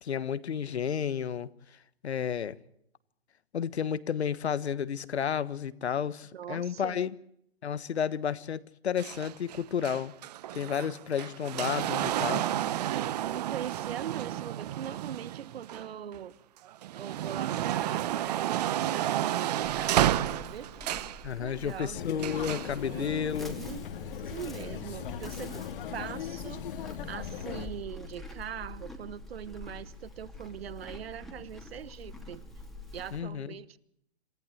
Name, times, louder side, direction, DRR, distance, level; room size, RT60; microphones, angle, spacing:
voice 1, 0.0-1.5 2.0-2.6 3.5-7.1 7.6-10.1 10.5-12.4 21.2-23.6 33.1-33.6, left 8 dB, 75° left, 1.4 m, -32 dB
voice 2, 6.3-7.0 13.2-16.4 16.9-20.8 21.4-22.0 22.9-23.8 24.2-25.6 25.9-26.7 27.0-32.4 32.9-33.8, right 9 dB, 65° right, 1.2 m, -41 dB
sound 1, 9.0-16.2 16.7-21.2 22.2-22.8 23.6-23.7, right 12 dB, 40° right, 0.9 m, -31 dB
Livestock farm animals working animals, 19.6-33.2, left 2 dB, ahead, 2.5 m, -46 dB
sound 2, 21.9-27.7, left 9 dB, 50° left, 2.0 m, -39 dB
27.5 x 15.0 x 8.0 m
hypercardioid pair, 145°, 33 cm